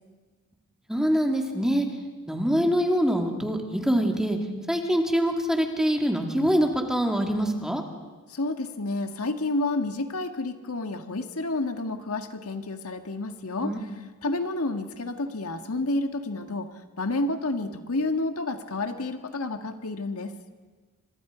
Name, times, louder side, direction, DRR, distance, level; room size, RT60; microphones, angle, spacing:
voice 1, 0.9-1.9 2.3-4.4 4.7-7.8 13.6-13.8 14.2-14.3, equal, 5° right, 3 dB, 2.4 m, -24 dB
voice 2, 8.3-13.9 14.2-16.7 17.0-20.4, left 2 dB, 80° left, 7 dB, 1.6 m, -30 dB
28.5 x 26.0 x 5.0 m, 1.4 s
head